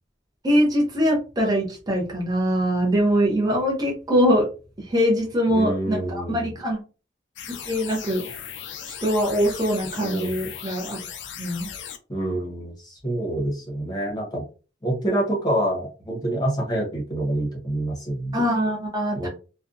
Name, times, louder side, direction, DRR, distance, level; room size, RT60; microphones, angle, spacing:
voice 1, 0.4-4.5 4.9-6.8 7.5-8.2 8.9-11.0 11.4-11.7 18.3-19.3, equal, 20° right, -2 dB, 0.7 m, -22 dB
voice 2, 5.5-6.5 10.0-10.4 12.1-14.4 14.8-18.4 19.1-19.3, right 1 dB, 20° left, -2 dB, 0.9 m, -27 dB
sound 1, 7.4-12.0, left 8 dB, 65° left, 0.4 m, -37 dB
2.5 x 2.2 x 2.5 m, 0.34 s
head